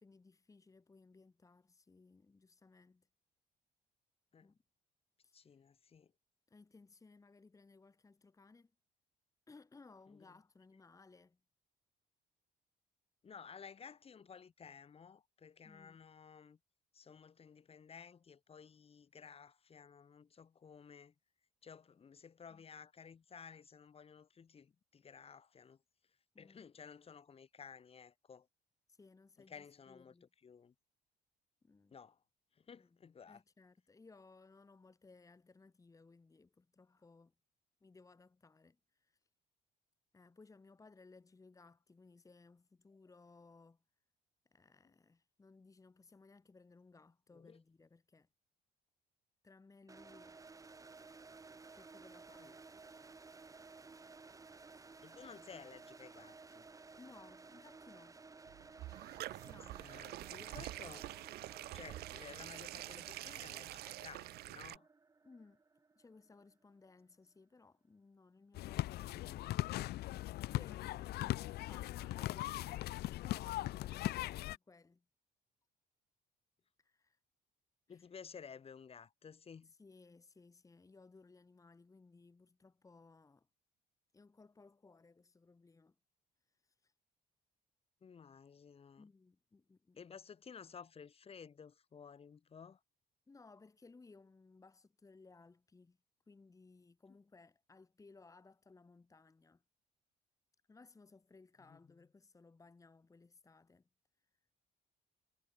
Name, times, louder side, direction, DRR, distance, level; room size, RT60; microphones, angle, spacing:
voice 1, 0.0-3.1 4.4-4.6 5.2-5.6 6.5-8.7 9.5-11.4 15.6-16.0 22.5-22.6 26.3-26.7 28.9-30.3 31.6-32.0 32.7-32.9 33.3-37.3 37.8-39.2 40.1-43.8 44.5-48.3 49.4-50.4 51.7-52.6 54.7-54.8 57.0-58.2 59.3-59.9 65.2-65.6 66.0-69.7 70.4-75.0 76.8-77.2 77.9-78.1 79.6-83.5 84.1-86.0 86.5-86.9 89.0-90.0 93.3-96.0 96.3-99.6 100.7-103.9, left 3 dB, 20° left, 2.5 m, -62 dB
voice 2, 5.3-6.1 10.1-10.4 13.2-16.6 16.9-21.1 21.6-25.8 26.4-28.5 29.5-30.7 31.9-32.2 32.6-33.4 47.3-47.6 52.4-52.5 55.0-56.7 59.8-61.1 61.7-64.9 77.9-79.7 88.0-89.1 90.0-92.8 101.7-101.8, left 6 dB, 35° left, 3.2 m, -55 dB
sound 1, 49.9-66.7, right 4 dB, 20° right, 1.5 m, -57 dB
sound 2, 58.5-64.8, right 16 dB, 70° right, 0.7 m, -47 dB
sound 3, 68.5-74.6, left 16 dB, 70° left, 0.8 m, -39 dB
cardioid pair, 110°, 17 cm